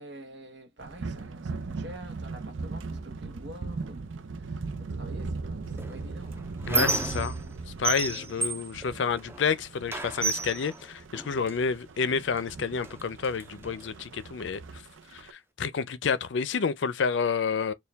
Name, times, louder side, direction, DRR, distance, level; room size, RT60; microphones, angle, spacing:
voice 1, 0.0-4.1 4.4-6.5, right 1 dB, 65° right, 1.0 m, -47 dB
sound 1, 0.8-15.3, right 3 dB, 90° right, 0.6 m, -39 dB
Squeak, 5.8-7.6 7.8-9.5 9.9-11.6 12.4-12.5 12.8-13.9, right 3 dB, 15° right, 0.5 m, -32 dB
voice 2, 6.7-7.4 7.8-14.8 15.1-17.7, left 5 dB, 65° left, 0.5 m, -29 dB
4.4 x 2.3 x 3.4 m
head